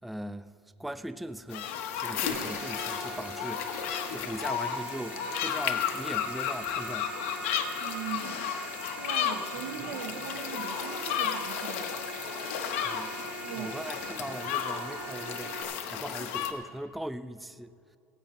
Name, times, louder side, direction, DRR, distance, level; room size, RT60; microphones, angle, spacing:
voice 1, 0.0-0.5 0.8-1.7 2.0-3.8 4.1-7.1 12.8-13.2 13.6-17.8, right 1 dB, ahead, 0.3 m, -39 dB
sound 1, 1.5-16.5, left 9 dB, 85° left, 1.3 m, -33 dB
sound 2, 2.3-15.6, right 2 dB, 15° right, 3.4 m, -41 dB
voice 2, 7.8-8.6 9.0-12.1 13.4-13.8, right 11 dB, 80° right, 1.0 m, -40 dB
16.5 x 9.4 x 5.6 m
cardioid pair, 145°, 7 cm